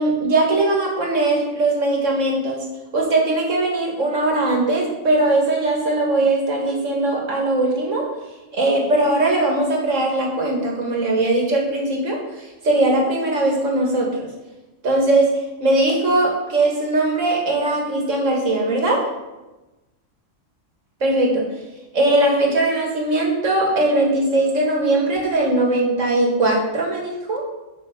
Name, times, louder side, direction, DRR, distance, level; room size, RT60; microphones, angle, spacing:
voice 1, 0.0-2.6 2.9-8.1 8.5-14.3 14.8-15.3 15.6-19.0 21.0-21.5 21.9-27.4, right 2 dB, 75° right, -1 dB, 2.3 m, -20 dB
8.3 x 6.1 x 5.3 m, 1.1 s
omnidirectional pair, 1.3 m